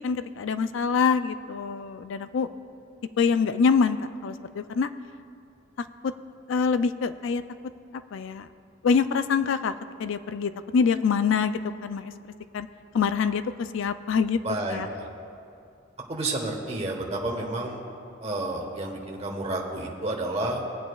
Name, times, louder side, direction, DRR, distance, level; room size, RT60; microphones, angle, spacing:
voice 1, 0.0-2.5 3.2-4.0 4.2-4.9 6.0-6.1 6.5-7.4 7.9-8.5 8.8-9.7 10.0-12.1 12.5-12.7 12.9-14.4 14.7-14.9, left 5 dB, 70° left, 12 dB, 0.4 m, -25 dB
voice 2, 14.4-15.1 16.1-17.8 18.2-20.6, right 2 dB, 35° right, -1 dB, 1.2 m, -30 dB
19.5 x 8.7 x 2.3 m, 2.5 s
head